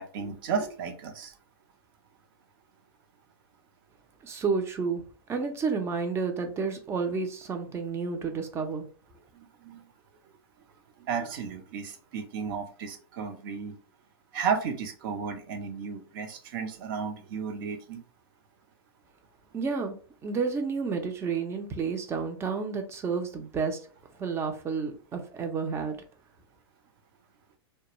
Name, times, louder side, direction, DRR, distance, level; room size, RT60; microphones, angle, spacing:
voice 1, 0.0-1.3 9.3-9.8 11.0-13.7 14.3-18.0, right 6 dB, 50° right, 0.7 m, -33 dB
voice 2, 4.2-5.0 5.3-8.9 19.5-20.0 20.2-23.8 24.2-26.0, right 5 dB, 20° right, 0.5 m, -30 dB
2.3 x 2.2 x 2.9 m
hypercardioid pair, 115°, 14 cm